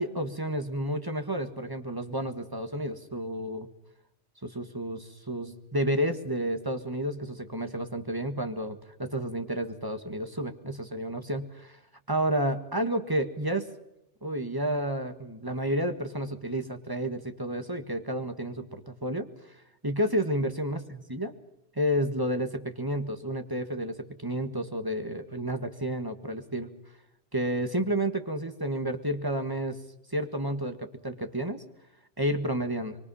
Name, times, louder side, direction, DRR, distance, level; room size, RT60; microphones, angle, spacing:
voice 1, 0.0-3.7 4.4-11.8 12.1-13.7 14.2-19.6 19.8-21.3 21.7-26.7 27.3-29.8 30.1-31.6 32.2-33.0, right 1 dB, 20° right, 7 dB, 1.8 m, -31 dB
25.0 x 23.5 x 5.7 m, 0.83 s
omnidirectional pair, 1.2 m